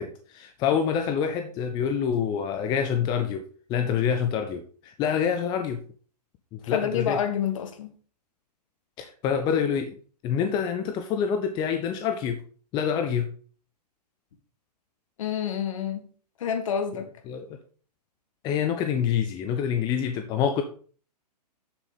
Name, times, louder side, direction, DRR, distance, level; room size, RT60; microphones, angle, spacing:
voice 1, 0.0-3.4 3.7-5.8 6.5-7.2 9.0-9.9 10.2-12.4 12.7-13.3 17.3-17.6 18.4-20.6, left 7 dB, 20° left, 0.7 m, -26 dB
voice 2, 6.6-7.9 15.2-16.1 16.4-17.1, left 8 dB, 50° left, 1.7 m, -28 dB
7.2 x 7.1 x 5.2 m
figure-of-eight pair, 115°, 21 cm